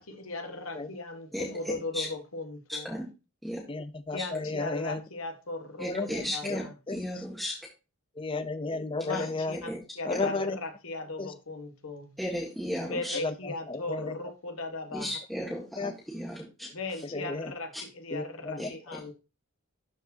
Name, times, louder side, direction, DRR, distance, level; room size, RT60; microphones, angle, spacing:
voice 1, 0.0-2.9 4.1-6.7 9.0-9.7 10.0-12.2 12.8-15.2 16.7-19.1, left 3 dB, 75° left, 1.4 m, -37 dB
voice 2, 2.7-3.0 3.4-3.6 5.8-6.6 6.9-7.5 9.7-9.8 10.1-10.2 12.2-13.2 14.9-16.7 18.6-18.7, equal, ahead, 1.7 m, -34 dB
voice 3, 3.7-5.0 5.9-6.1 6.4-7.3 8.2-9.6 10.0-10.6 11.2-11.3 13.1-14.2 15.8-15.9 17.0-17.5 18.1-18.7, left 3 dB, 25° left, 0.5 m, -33 dB
12.0 x 4.7 x 2.7 m
head